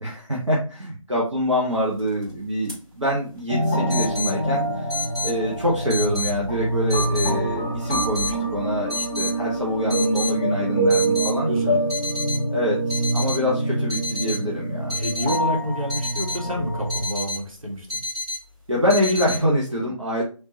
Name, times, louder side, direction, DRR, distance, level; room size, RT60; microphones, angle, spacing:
voice 1, 0.0-4.8 5.2-11.5 12.5-15.0 18.7-20.2, equal, 60° right, -3 dB, 1.0 m, -25 dB
sound 1, 2.0-2.2 2.7-2.8 3.9-4.3 4.9-5.3 5.9-6.3 6.9-7.3 7.9-8.3 8.9-9.3 9.9-10.3 10.9-11.3 11.9-12.4 12.9-13.4 13.9-14.4 14.9-15.4 15.9-16.4 16.9-17.4 17.9-18.4 18.9-19.4, left 2 dB, 10° right, 1.6 m, -29 dB
sound 2, 3.5-17.1, right 1 dB, 15° left, 0.6 m, -26 dB
voice 2, 11.4-11.9 14.9-18.0, equal, 75° right, -2 dB, 1.7 m, -28 dB
3.4 x 2.9 x 2.8 m, 0.36 s
figure-of-eight pair, 165°, 17 cm